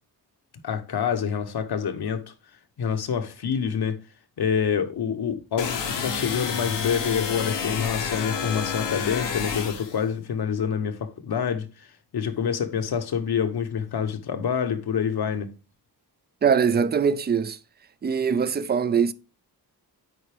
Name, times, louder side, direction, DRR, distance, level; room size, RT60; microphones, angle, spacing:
voice 1, 0.6-2.3 2.8-4.0 4.4-11.9 12.1-15.5, left 7 dB, 65° left, 1.0 m, -27 dB
sound 1, 5.6-10.0, left 6 dB, 85° left, 1.2 m, -29 dB
voice 2, 16.4-17.6 18.0-19.1, right 6 dB, 25° right, 0.4 m, -22 dB
9.4 x 4.1 x 3.4 m
wide cardioid pair, 100°, 41 cm